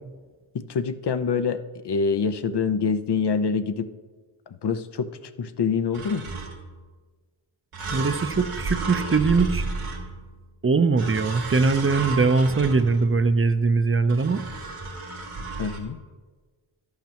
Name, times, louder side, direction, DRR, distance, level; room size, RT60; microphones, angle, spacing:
voice 1, 0.5-3.9 4.5-5.1 5.4-6.3 15.6-16.0, left 5 dB, 55° left, 11 dB, 0.8 m, -25 dB
sound 1, 5.9-6.8 7.7-10.4 11.0-13.2 14.1-15.8, right 3 dB, 85° right, 1.8 m, -33 dB
voice 2, 7.9-9.6 10.6-14.4, right 4 dB, 25° right, 10 dB, 0.7 m, -21 dB
12.5 x 11.5 x 3.0 m, 1.4 s
cardioid pair, 45°, 49 cm